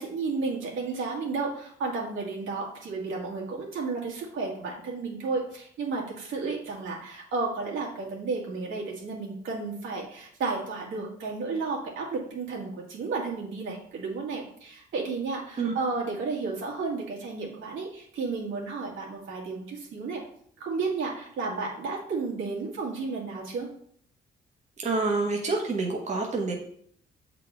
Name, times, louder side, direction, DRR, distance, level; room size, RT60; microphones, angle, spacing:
voice 1, 0.0-20.2 20.6-23.7, right 4 dB, 75° right, -3 dB, 2.0 m, -32 dB
voice 2, 24.8-26.5, right 3 dB, 35° right, -1 dB, 1.0 m, -27 dB
7.3 x 4.1 x 3.4 m, 0.64 s
cardioid pair, 90°, 20 cm